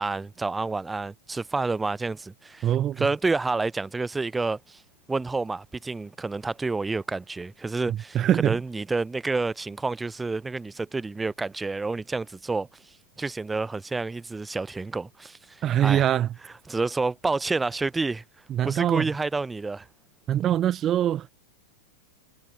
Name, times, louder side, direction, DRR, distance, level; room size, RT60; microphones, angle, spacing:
voice 1, 0.0-2.7 3.0-4.8 5.1-12.7 13.2-16.1 16.7-18.2 18.6-19.9, right 3 dB, 10° right, 1.9 m, -29 dB
voice 2, 2.6-3.1 8.1-8.6 15.6-16.3 18.5-19.1 20.3-21.3, right 11 dB, 30° right, 1.5 m, -23 dB
figure-of-eight pair, 90°, 0 cm